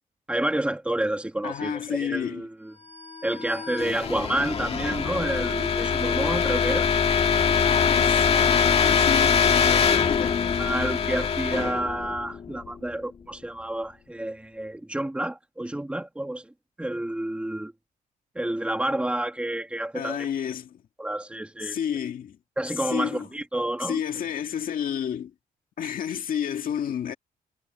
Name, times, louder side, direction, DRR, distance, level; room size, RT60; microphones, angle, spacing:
voice 1, 0.3-2.7 3.2-7.0 9.7-9.8 10.2-10.3 10.6-16.5 16.8-17.7 18.3-20.3 21.0-21.8 22.6-24.0, right 1 dB, 10° right, 2.6 m, -29 dB
voice 2, 1.4-2.4 7.6-10.6 19.9-20.8 21.6-22.4 22.9-23.3 23.8-25.3 25.8-27.1, left 9 dB, 70° left, 2.1 m, -31 dB
sound 1, 3.1-12.9, left 6 dB, 45° left, 1.9 m, -23 dB
wide cardioid pair, 150°, 15 cm